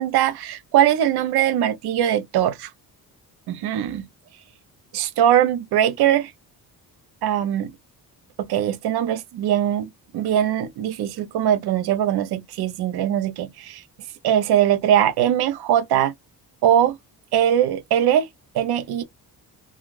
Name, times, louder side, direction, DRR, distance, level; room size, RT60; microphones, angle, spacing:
voice 1, 0.0-2.7 3.5-4.0 4.9-6.3 7.2-7.7 8.5-9.9 10.1-13.8 14.2-16.1 16.6-17.0 17.3-18.3 18.5-19.0, right 10 dB, 75° right, 0.6 m, -21 dB
2.5 x 2.3 x 3.1 m
cardioid pair, 110°, 39 cm